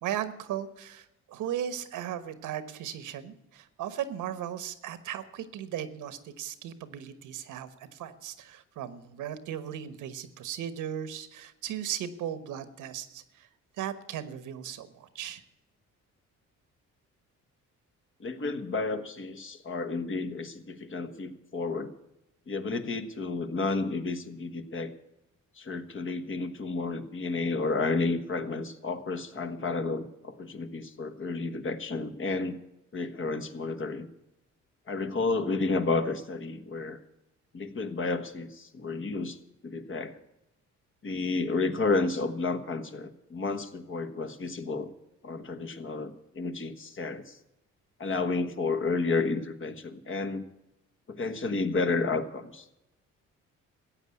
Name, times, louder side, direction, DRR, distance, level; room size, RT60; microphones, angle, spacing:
voice 1, 0.0-13.5 13.8-15.4, right 10 dB, 85° right, 12 dB, 1.3 m, -37 dB
voice 2, 18.2-21.9 22.5-24.9 25.6-32.6 32.9-34.1 34.9-37.0 37.5-39.4 39.6-40.2 41.0-44.9 45.2-47.4 48.0-50.4 51.1-52.7, left 3 dB, 40° left, 9 dB, 1.4 m, -31 dB
14.5 x 8.7 x 8.5 m, 0.90 s
cardioid pair, 90°, 30 cm